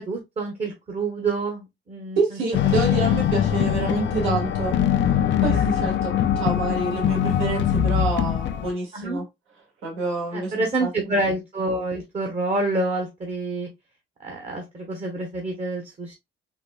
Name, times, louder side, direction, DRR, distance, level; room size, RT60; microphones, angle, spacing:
voice 1, 0.0-2.4 5.3-5.4 5.8-5.9 8.9-9.2 10.3-13.7 14.2-16.1, right 2 dB, 35° right, 1.0 m, -27 dB
voice 2, 2.2-4.8 5.4-9.3 9.8-10.9, right 3 dB, 80° right, 1.7 m, -27 dB
sound 1, 2.5-8.7, left 10 dB, 65° left, 0.5 m, -22 dB
4.1 x 2.5 x 2.2 m
cardioid pair, 90°, 20 cm